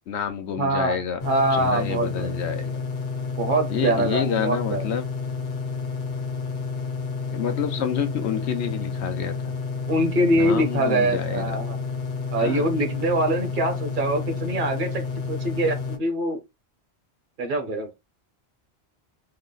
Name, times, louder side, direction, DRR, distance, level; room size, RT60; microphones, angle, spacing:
voice 1, 0.1-1.2 1.5-2.7 3.7-5.0 7.3-9.5 10.3-11.5 12.4-12.7, left 7 dB, 90° left, 1.0 m, -28 dB
voice 2, 0.6-2.4 3.4-4.9 9.9-11.8 12.3-16.4 17.4-18.0, right 1 dB, 55° right, 0.9 m, -24 dB
sound 1, 1.2-16.0, left 5 dB, 55° left, 0.9 m, -30 dB
3.3 x 2.0 x 3.8 m
omnidirectional pair, 1.1 m